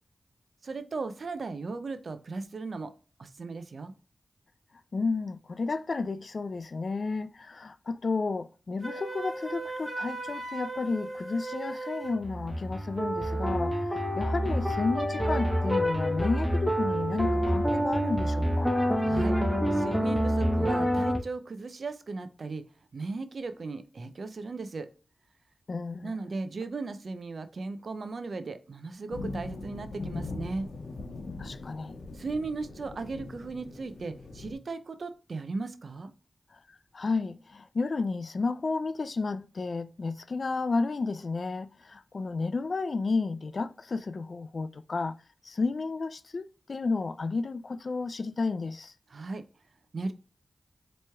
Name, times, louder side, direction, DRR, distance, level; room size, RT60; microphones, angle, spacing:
voice 1, 0.6-2.9 3.2-3.9 19.0-19.4 19.7-22.6 22.9-24.9 26.0-30.7 32.1-36.1 49.1-49.4 49.9-50.1, right 3 dB, 70° right, 0.5 m, -36 dB
voice 2, 4.9-18.8 25.7-26.2 31.4-32.0 36.5-36.6 36.9-45.1 45.4-48.9, left 3 dB, 65° left, 0.3 m, -32 dB
Wind instrument woodwind instrument, 8.8-12.2, right 2 dB, 20° right, 1.8 m, -37 dB
sound 1, 12.1-21.2, equal, 5° right, 0.9 m, -27 dB
sound 2, 29.1-34.5, left 3 dB, 85° left, 0.8 m, -40 dB
4.4 x 3.0 x 2.2 m
cardioid pair, 45°, 0 cm